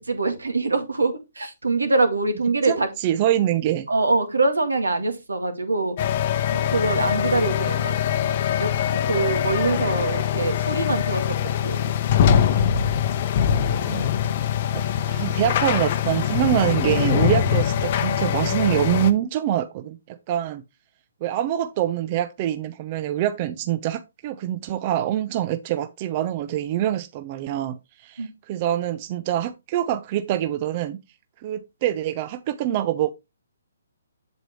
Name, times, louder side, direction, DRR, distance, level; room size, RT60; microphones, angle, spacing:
voice 1, 0.0-2.9 3.9-6.0 6.5-7.9 8.6-8.7 9.0-11.9 28.2-28.3, right 3 dB, 80° right, 2.0 m, -24 dB
voice 2, 2.7-3.9 13.8-14.1 14.7-20.6 21.2-31.0 31.4-33.1, right 12 dB, 35° right, 0.6 m, -25 dB
sound 1, 6.0-19.1, left 9 dB, 40° left, 0.8 m, -23 dB
7.9 x 7.5 x 3.2 m
figure-of-eight pair, 135°, 0 cm